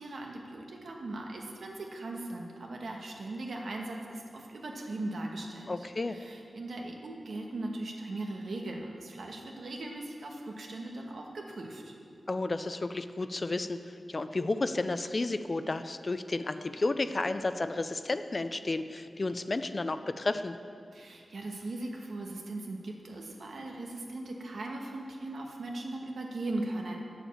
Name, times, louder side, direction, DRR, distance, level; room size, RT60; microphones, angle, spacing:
voice 1, 0.0-11.9 20.9-27.0, right 2 dB, 75° right, 1 dB, 1.3 m, -39 dB
voice 2, 5.7-6.2 12.3-13.8 14.1-20.6, left 2 dB, 35° left, 11 dB, 0.4 m, -32 dB
8.6 x 7.1 x 7.1 m, 2.3 s
wide cardioid pair, 120°, 0 cm